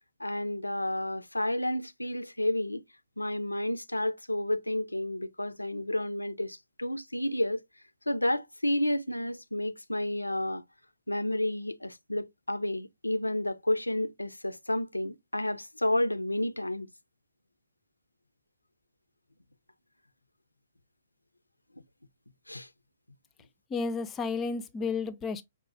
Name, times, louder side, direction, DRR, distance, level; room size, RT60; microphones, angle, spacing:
voice 1, 0.2-2.8 3.2-7.6 8.1-10.6 11.1-16.9 22.5-22.7, left 1 dB, 85° left, 0.3 m, -31 dB
voice 2, 23.7-25.4, left 4 dB, 15° left, 0.4 m, -32 dB
5.4 x 2.0 x 2.3 m
figure-of-eight pair, 120°, 0 cm